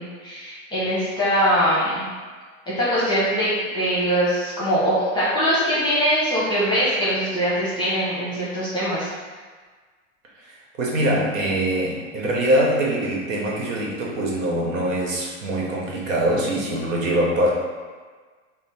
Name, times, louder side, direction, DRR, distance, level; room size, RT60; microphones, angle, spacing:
voice 1, 0.0-2.1 2.7-9.1, equal, 10° left, -8 dB, 0.8 m, -22 dB
voice 2, 10.4-17.5, right 1 dB, 75° right, -2 dB, 1.1 m, -23 dB
3.4 x 2.0 x 4.2 m, 1.5 s
hypercardioid pair, 125°, 40 cm